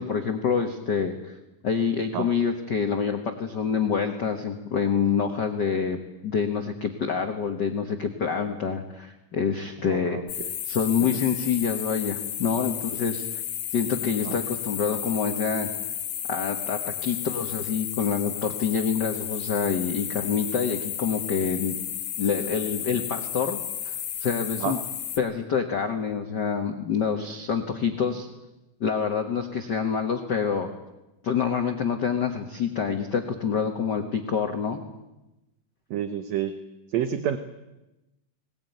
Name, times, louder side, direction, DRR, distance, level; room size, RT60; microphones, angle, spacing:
voice 1, 0.0-1.4 1.6-10.2 10.7-13.2 13.7-15.7 16.3-21.8 22.2-23.6 23.8-23.9 24.2-24.8 25.2-28.3 28.8-30.7 31.2-34.8, left 6 dB, 55° left, 6 dB, 1.2 m, -27 dB
voice 2, 9.8-10.5 14.2-14.4 24.6-24.8 35.9-36.6 36.9-37.4, right 10 dB, 65° right, 10 dB, 1.8 m, -29 dB
sound 1, 10.3-25.2, left 10 dB, 85° left, 3.4 m, -33 dB
20.0 x 20.0 x 9.3 m, 0.99 s
omnidirectional pair, 4.0 m